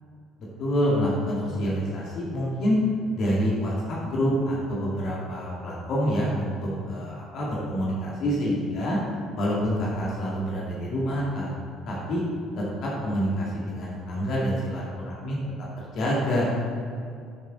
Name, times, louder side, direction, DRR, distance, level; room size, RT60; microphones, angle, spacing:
voice 1, 0.6-2.8 3.1-9.0 9.4-11.5 11.9-12.2 12.6-15.4 15.9-16.5, equal, 55° left, -5 dB, 2.2 m, -27 dB
12.5 x 7.4 x 4.0 m, 2.4 s
figure-of-eight pair, 55°, 0 cm